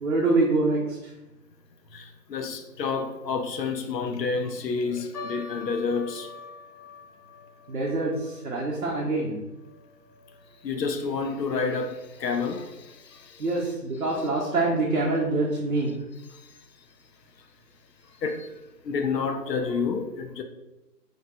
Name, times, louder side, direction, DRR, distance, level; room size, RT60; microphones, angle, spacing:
voice 1, 0.0-1.1 7.7-9.4 13.4-15.9, right 2 dB, 60° right, 0.6 m, -25 dB
voice 2, 2.3-6.3 10.6-12.7 18.2-18.5 18.9-20.4, left 5 dB, 80° left, 0.5 m, -29 dB
sound 1, 5.1-11.6 11.9-12.0 12.7-13.0 13.6-13.7 14.1-14.2, left 4 dB, 60° left, 1.0 m, -46 dB
2.8 x 2.3 x 2.7 m
figure-of-eight pair, 165°, 49 cm